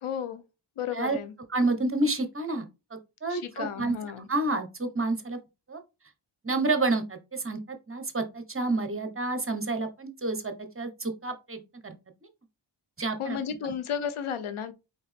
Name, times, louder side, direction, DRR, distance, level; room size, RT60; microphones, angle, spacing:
voice 1, 0.0-0.4 0.8-1.3 3.3-4.3 13.2-14.7, left 8 dB, 90° left, 0.8 m, -33 dB
voice 2, 1.5-2.6 2.9-3.9 4.3-5.4 5.7-5.8 6.4-11.9 13.0-13.4, right 2 dB, 25° right, 1.1 m, -29 dB
4.2 x 3.6 x 3.4 m
cardioid pair, 50°, 49 cm